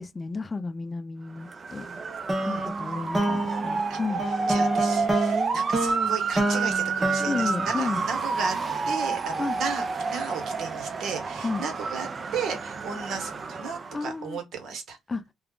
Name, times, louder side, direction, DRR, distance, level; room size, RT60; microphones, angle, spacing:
voice 1, 0.0-1.9 2.5-4.3 7.2-8.0 9.4-9.6 11.4-11.6 13.9-14.4 15.1-15.2, left 3 dB, 30° left, 0.3 m, -32 dB
Motor vehicle (road) / Siren, 1.4-14.1, right 5 dB, 45° right, 0.5 m, -30 dB
sound 1, 2.3-8.7, right 1 dB, 20° right, 0.9 m, -29 dB
voice 2, 4.5-8.6 8.9-15.0, right 5 dB, 70° right, 1.0 m, -34 dB
2.3 x 2.2 x 3.5 m
cardioid pair, 90°, 0 cm